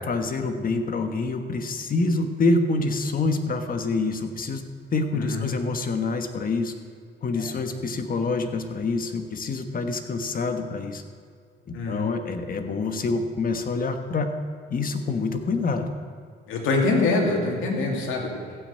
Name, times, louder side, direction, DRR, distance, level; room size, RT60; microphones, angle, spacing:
voice 1, 0.1-4.6 4.9-6.7 7.2-11.0 11.7-14.3 14.7-15.9, left 3 dB, 45° left, 7 dB, 1.4 m, -26 dB
voice 2, 5.1-5.5 7.3-7.6 11.7-12.1 16.5-18.3, left 3 dB, 90° left, 0 dB, 2.5 m, -24 dB
15.0 x 6.4 x 8.2 m, 2.2 s
cardioid pair, 90°, 20 cm